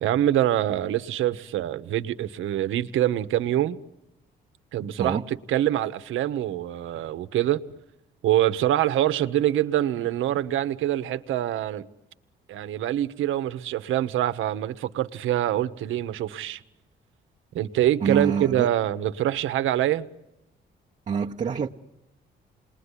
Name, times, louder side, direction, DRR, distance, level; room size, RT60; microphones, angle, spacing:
voice 1, 0.0-3.8 4.7-7.6 8.2-11.9 12.5-16.6 17.5-20.1, right 12 dB, 80° right, 1.0 m, -25 dB
voice 2, 18.0-18.7 21.1-21.7, right 6 dB, 40° right, 1.0 m, -26 dB
28.0 x 20.5 x 9.9 m
cardioid pair, 90°, 20 cm